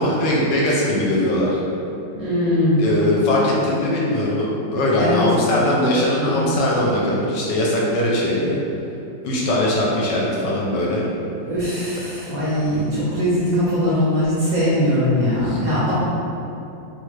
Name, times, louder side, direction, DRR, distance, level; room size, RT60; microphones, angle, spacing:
voice 1, 0.0-1.6 2.8-4.5 4.7-8.6 9.2-11.0 15.4-15.6, left 1 dB, 75° left, -4 dB, 1.1 m, -20 dB
voice 2, 2.1-2.8 5.0-5.2 6.3-6.5 11.4-15.9, left 1 dB, 65° right, -10 dB, 0.9 m, -21 dB
3.1 x 2.3 x 3.1 m, 2.7 s
omnidirectional pair, 2.0 m